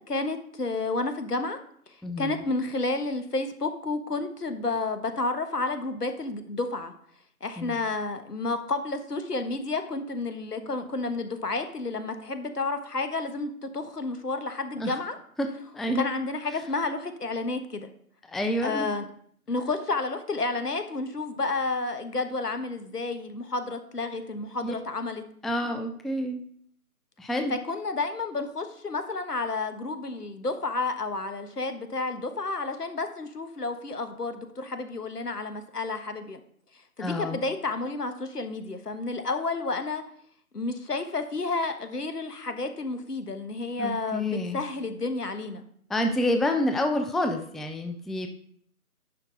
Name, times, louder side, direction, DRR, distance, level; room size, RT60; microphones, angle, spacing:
voice 1, 0.1-1.6 1.9-6.9 7.4-15.2 15.9-17.9 18.6-19.1 19.5-25.2 27.5-36.4 37.0-40.0 40.5-45.6, left 3 dB, 90° left, 8 dB, 1.3 m, -31 dB
voice 2, 2.0-2.4 7.6-7.8 14.8-15.0 15.4-15.5 15.7-16.1 18.3-18.9 24.6-24.7 25.4-26.4 27.2-27.6 37.0-37.4 43.8-44.6 45.9-48.3, left 1 dB, ahead, 5 dB, 0.3 m, -28 dB
10.0 x 5.9 x 3.8 m, 0.62 s
figure-of-eight pair, 160°, 45 cm